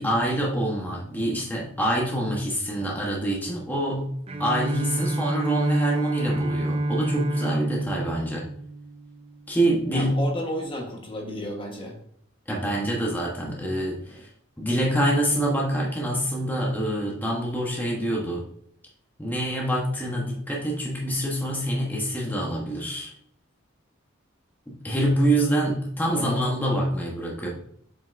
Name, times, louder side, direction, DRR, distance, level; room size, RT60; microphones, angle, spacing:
voice 1, 0.0-4.1 4.4-8.5 9.5-10.2 12.5-14.3 14.6-18.4 19.2-23.1 24.7-27.5, right 1 dB, 10° left, -3 dB, 1.1 m, -26 dB
Bowed string instrument, 4.3-9.5, right 1 dB, 30° right, 0.6 m, -28 dB
voice 2, 9.9-11.9 26.0-26.4, equal, 25° left, 1 dB, 1.2 m, -32 dB
7.5 x 5.6 x 2.6 m, 0.67 s
head